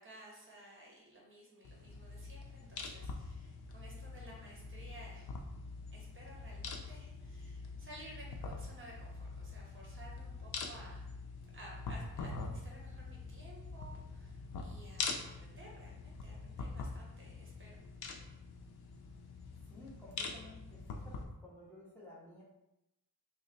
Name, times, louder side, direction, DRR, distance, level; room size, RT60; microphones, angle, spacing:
voice 1, 0.0-5.3 5.9-11.0 11.5-17.8, right 1 dB, 30° right, -3 dB, 0.9 m, -55 dB
sound 1, 1.7-21.2, left 4 dB, 75° left, 0.6 m, -44 dB
voice 2, 19.7-22.4, left 1 dB, 5° left, -6 dB, 0.8 m, -54 dB
3.1 x 2.1 x 3.9 m, 0.89 s
wide cardioid pair, 115°, 38 cm